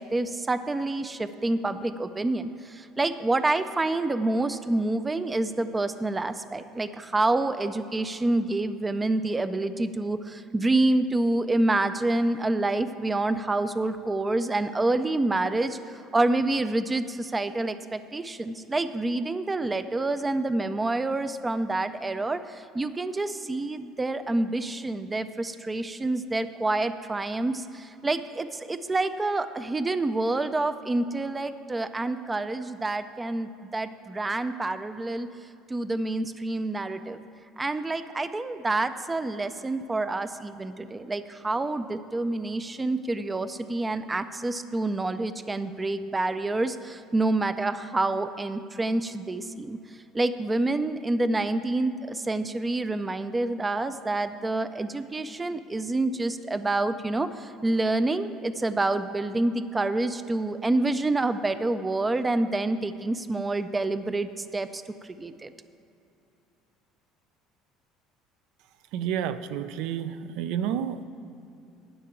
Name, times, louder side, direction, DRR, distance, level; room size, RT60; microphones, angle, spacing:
voice 1, 0.0-15.8 16.1-35.3 35.7-37.2 37.6-49.8 50.1-64.8 65.1-65.5, right 2 dB, 15° right, 11 dB, 0.4 m, -27 dB
voice 2, 68.9-71.0, right 9 dB, 75° right, 12 dB, 0.5 m, -30 dB
11.0 x 5.7 x 8.7 m, 2.7 s
cardioid pair, 145°, 0 cm